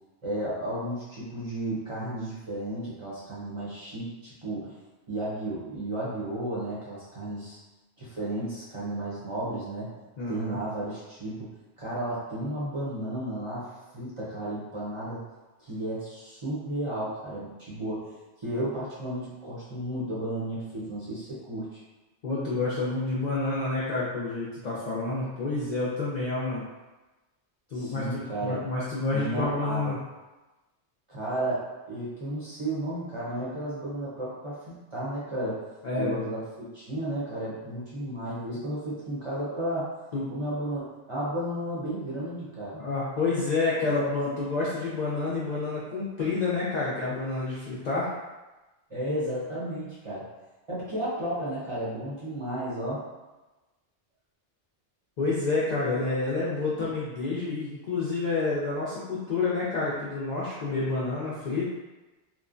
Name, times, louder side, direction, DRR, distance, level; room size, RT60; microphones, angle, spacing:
voice 1, 0.2-4.8 5.1-7.6 8.0-9.9 10.3-11.5 11.8-13.7 13.9-15.2 15.6-18.1 18.4-21.7 27.7-28.6 29.1-30.0 31.1-35.6 36.0-39.9 40.3-42.8 48.9-50.3 50.7-53.0 56.8-56.9, right 1 dB, 35° right, -8 dB, 0.7 m, -33 dB
voice 2, 10.2-10.6 22.2-26.6 27.7-30.0 35.8-36.2 40.1-40.2 42.8-48.1 55.2-61.7, left 3 dB, 55° left, -7 dB, 0.5 m, -29 dB
2.9 x 2.1 x 2.4 m, 1.1 s
omnidirectional pair, 1.1 m